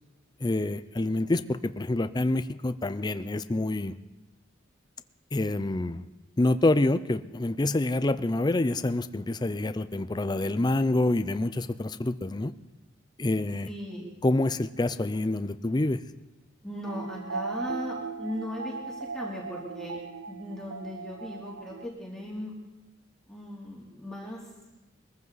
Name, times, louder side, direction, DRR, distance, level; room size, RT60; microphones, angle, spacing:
voice 1, 0.4-4.0 5.3-6.1 6.4-12.5 13.2-13.7 14.2-16.0, left 2 dB, 20° left, 12 dB, 0.5 m, -27 dB
voice 2, 13.7-14.1 16.6-20.0 20.3-22.5 23.3-24.4, equal, 5° left, -4 dB, 3.0 m, -38 dB
sound 1, 16.8-21.9, right 4 dB, 85° right, 0.7 m, -38 dB
22.0 x 15.0 x 4.0 m, 1.1 s
head